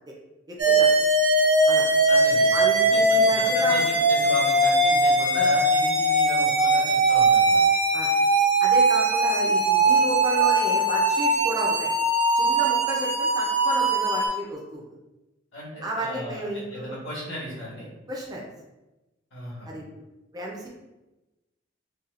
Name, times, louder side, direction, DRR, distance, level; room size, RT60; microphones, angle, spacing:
voice 1, 0.5-0.9 1.7-1.9 2.5-3.9 7.9-8.1 8.6-11.9 12.3-14.8 15.8-16.9 18.1-18.4 19.6-19.8 20.3-20.7, equal, 20° right, -3 dB, 0.5 m, -32 dB
sound 1, 0.6-14.3, right 2 dB, 60° right, 0.8 m, -20 dB
voice 2, 2.1-7.6 15.5-17.9 19.3-19.7, equal, 75° left, -6 dB, 1.4 m, -36 dB
4.0 x 2.3 x 2.5 m, 1.0 s
head